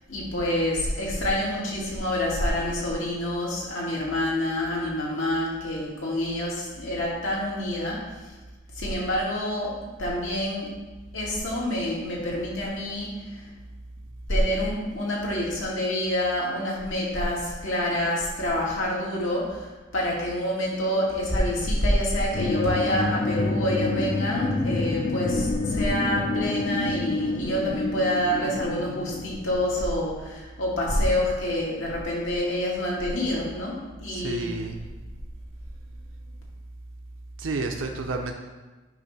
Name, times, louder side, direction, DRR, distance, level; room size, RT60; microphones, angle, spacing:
voice 1, 0.1-8.0 8.2-8.3 8.8-9.7 10.0-10.7 11.1-13.4 14.3-34.5, left 1 dB, 85° left, -4 dB, 2.1 m, -27 dB
sound 1, 22.3-29.9, left 3 dB, 35° left, 0.4 m, -28 dB
voice 2, 34.1-34.8 37.4-38.3, right 3 dB, 85° right, 3 dB, 0.6 m, -30 dB
8.8 x 3.1 x 5.9 m, 1.2 s
head